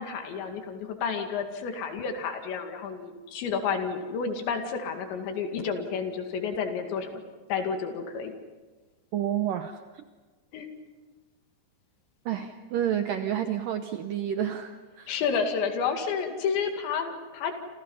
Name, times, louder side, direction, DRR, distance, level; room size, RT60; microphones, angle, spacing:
voice 1, 0.0-7.2 7.5-8.3 10.5-10.7 15.1-17.5, left 6 dB, 80° left, 5 dB, 4.5 m, -30 dB
voice 2, 9.1-10.0 12.3-15.1, right 10 dB, 80° right, 7 dB, 2.0 m, -30 dB
28.5 x 28.0 x 5.6 m, 1.3 s
omnidirectional pair, 5.1 m